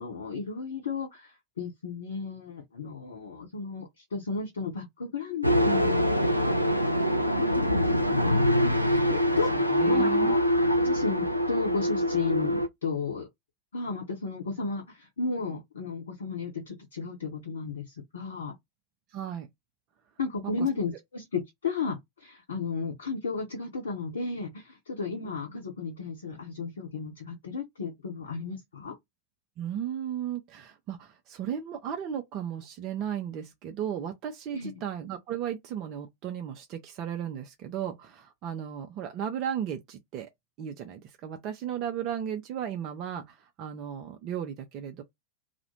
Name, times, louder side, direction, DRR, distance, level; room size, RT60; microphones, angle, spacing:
voice 1, 0.0-6.5 7.0-7.1 7.4-9.5 9.8-10.4 10.8-13.3 13.7-18.5 20.2-29.0 34.5-34.8, left 4 dB, 65° left, 0.7 m, -34 dB
sound 1, 5.4-12.7, equal, 90° left, 0.3 m, -24 dB
voice 2, 9.0-10.3 19.1-19.5 20.4-20.5 29.6-40.3 40.6-45.0, right 9 dB, 40° right, 0.4 m, -35 dB
2.4 x 2.1 x 2.8 m
figure-of-eight pair, 90°, 0 cm